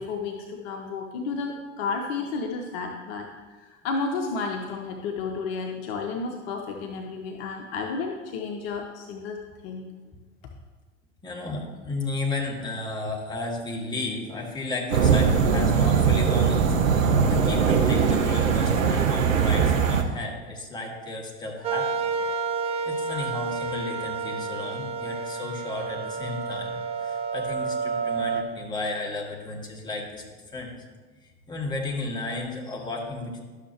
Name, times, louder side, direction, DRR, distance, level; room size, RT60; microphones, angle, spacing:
voice 1, 0.0-3.3 3.6-9.4 9.6-9.9, left 4 dB, 50° left, 2 dB, 0.9 m, -32 dB
voice 2, 11.2-22.1 22.8-30.2 30.5-30.7 31.2-33.4, left 2 dB, 10° left, -3 dB, 1.9 m, -33 dB
sound 1, 14.9-20.0, right 6 dB, 75° right, 0.9 m, -21 dB
sound 2, 21.6-28.4, right 5 dB, 15° right, 0.4 m, -30 dB
12.0 x 6.5 x 2.9 m, 1.4 s
figure-of-eight pair, 80°, 40 cm